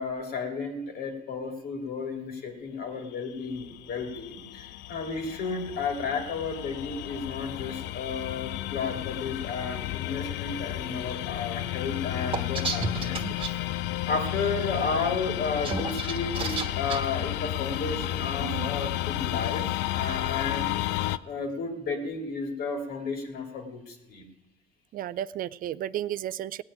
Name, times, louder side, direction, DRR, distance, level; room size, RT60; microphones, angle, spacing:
voice 1, 0.0-13.6 14.1-19.7 19.9-20.7 21.2-24.2, left 4 dB, 65° left, 4 dB, 2.5 m, -33 dB
sound 1, 3.4-21.2, left 15 dB, 85° left, 0.4 m, -32 dB
sound 2, 12.3-13.5 15.4-17.0, right 4 dB, 30° right, 1.2 m, -31 dB
voice 2, 24.9-26.6, right 12 dB, 55° right, 16 dB, 0.4 m, -33 dB
17.0 x 6.2 x 9.8 m, 1.0 s
cardioid pair, 110°, 17 cm